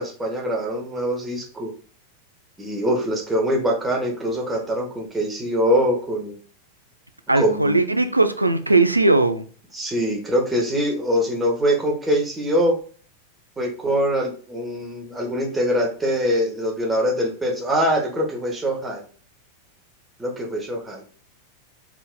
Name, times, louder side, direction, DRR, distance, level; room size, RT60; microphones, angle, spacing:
voice 1, 0.0-1.7 2.6-6.4 7.3-7.8 9.7-12.8 13.6-19.0 20.2-21.0, equal, 10° right, 1.3 m, -23 dB
voice 2, 7.3-9.5, right 2 dB, 85° right, 0.4 m, -18 dB
4.5 x 4.4 x 2.2 m
figure-of-eight pair, 90°, 0 cm